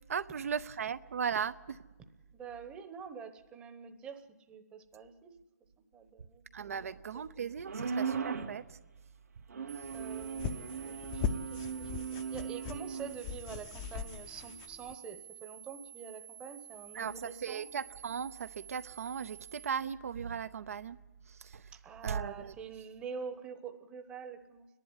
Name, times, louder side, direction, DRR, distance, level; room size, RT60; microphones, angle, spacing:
voice 1, 0.1-1.8 6.5-8.6 16.9-21.0 21.5-21.6 22.0-22.5, right 7 dB, 60° right, 0.7 m, -37 dB
voice 2, 2.3-4.2 4.5-5.3 5.9-7.0 9.9-17.7 21.7-24.7, right 6 dB, 10° right, 0.9 m, -46 dB
sound 1, 7.6-8.6 9.5-13.1, right 6 dB, 90° right, 2.7 m, -38 dB
sound 2, 9.7-19.7, right 11 dB, 35° right, 1.0 m, -51 dB
sound 3, 9.8-14.9, left 7 dB, 20° left, 0.7 m, -40 dB
28.0 x 11.0 x 9.8 m
hypercardioid pair, 160°, 9 cm